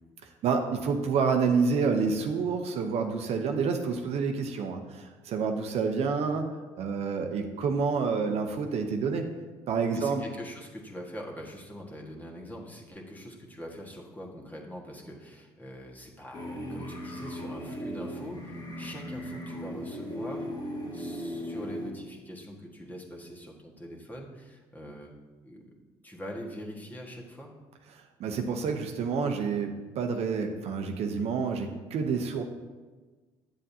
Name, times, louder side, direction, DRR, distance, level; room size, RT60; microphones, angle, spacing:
voice 1, 0.4-6.5 6.8-9.3 9.7-10.2 28.2-32.4, right 5 dB, 55° right, 4 dB, 0.8 m, -28 dB
voice 2, 9.9-20.5 20.9-25.1 25.4-25.7 26.0-27.5, equal, 15° left, -1 dB, 1.6 m, -43 dB
sound 1, 16.3-21.9, equal, 35° left, 1.8 m, -37 dB
8.8 x 7.5 x 2.8 m, 1.3 s
supercardioid pair, 75°, 12 cm